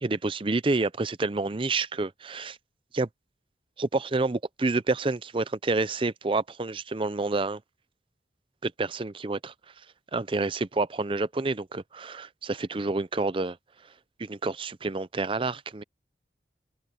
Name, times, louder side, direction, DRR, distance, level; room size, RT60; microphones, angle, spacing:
voice 1, 0.0-2.6 2.9-3.1 3.8-7.6 8.6-9.5 10.1-13.6 14.2-15.8, right 3 dB, 30° right, 0.5 m, -28 dB
head